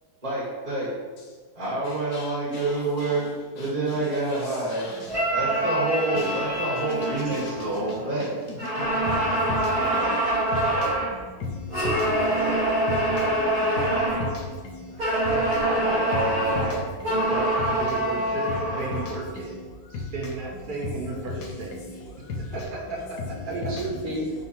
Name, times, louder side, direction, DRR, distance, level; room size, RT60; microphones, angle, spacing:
voice 1, 0.2-0.9 1.5-3.2 3.5-4.9 5.3-8.5, right 2 dB, 25° right, 1.0 m, -27 dB
voice 2, 1.8-3.1 3.6-3.7 4.1-5.2 6.1-6.3 7.3-7.5 8.5-15.0 15.2-15.5 16.7-17.3 19.4-19.6 19.9-20.1 21.3-22.5 24.2-24.3, left 3 dB, 80° left, 1.1 m, -37 dB
sound 1, 5.1-8.2 8.6-11.2 11.7-14.3 15.0-19.2, right 1 dB, 75° right, 2.3 m, -25 dB
voice 3, 13.7-14.4 15.6-16.9 23.5-24.3, right 2 dB, 90° right, 1.3 m, -32 dB
voice 4, 17.1-19.6 19.9-21.8 22.4-23.7, right 3 dB, 55° right, 0.5 m, -34 dB
5.1 x 2.1 x 4.2 m
omnidirectional pair, 1.7 m